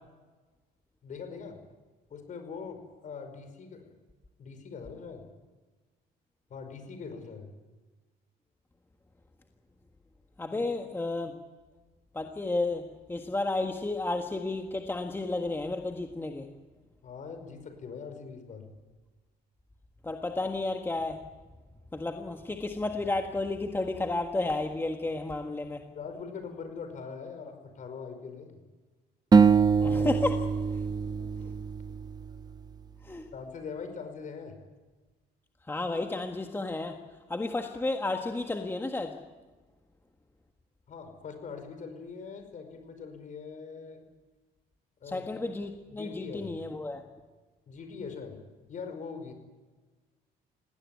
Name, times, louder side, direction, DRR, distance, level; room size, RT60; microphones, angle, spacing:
voice 1, 1.0-1.6 2.1-3.9 4.4-5.2 6.5-7.5 10.5-10.7 17.0-18.7 25.9-28.6 31.0-31.5 33.3-34.6 40.9-44.0 45.0-45.4 45.9-46.6 47.7-48.4 48.7-49.3, left 5 dB, 50° left, 8 dB, 5.2 m, -42 dB
voice 2, 10.4-11.4 12.1-12.8 13.1-16.5 20.0-21.2 21.9-25.8 29.8-30.5 33.0-33.3 35.7-37.0 37.3-39.1 45.1-47.0, left 2 dB, 15° left, 4 dB, 1.6 m, -32 dB
sound 1, 29.3-32.5, right 5 dB, 25° right, 0.9 m, -24 dB
19.5 x 17.5 x 9.7 m, 1.3 s
cardioid pair, 110°, 17 cm